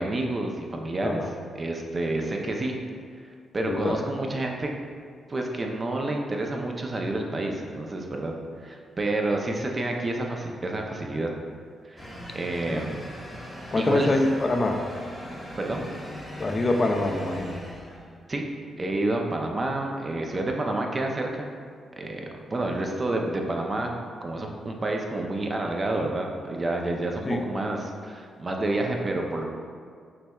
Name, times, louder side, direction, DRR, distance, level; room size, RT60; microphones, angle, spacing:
voice 1, 0.0-2.7 3.5-4.7 5.3-8.3 8.6-11.3 11.9-12.0 12.3-13.0 13.7-14.1 15.6-15.9 18.3-18.4 18.8-21.5 21.9-23.9 24.2-29.5, right 2 dB, 35° right, 2 dB, 0.5 m, -29 dB
voice 2, 3.6-4.0 12.7-12.8 13.7-14.8 16.4-17.6 27.3-27.4, left 2 dB, 40° left, 3 dB, 0.3 m, -25 dB
sound 1, 12.0-18.3, equal, 10° left, 1.0 m, -40 dB
5.6 x 2.3 x 2.3 m, 2.1 s
supercardioid pair, 50°, 0 cm